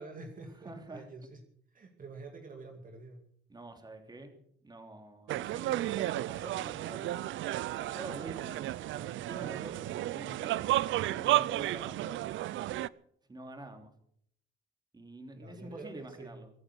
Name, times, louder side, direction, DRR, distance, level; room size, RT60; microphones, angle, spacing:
voice 1, 0.0-1.4 1.7-3.2 15.4-16.4, right 3 dB, 45° right, 3 dB, 2.4 m, -47 dB
voice 2, 0.6-1.0 3.5-4.4 4.6-7.1 7.7-10.6 11.0-12.5 13.3-13.9 14.9-16.5, right 2 dB, 20° right, 4 dB, 3.2 m, -47 dB
sound 1, 5.3-12.9, right 15 dB, 75° right, 0.5 m, -33 dB
24.0 x 8.9 x 6.3 m, 0.67 s
cardioid pair, 90°, 20 cm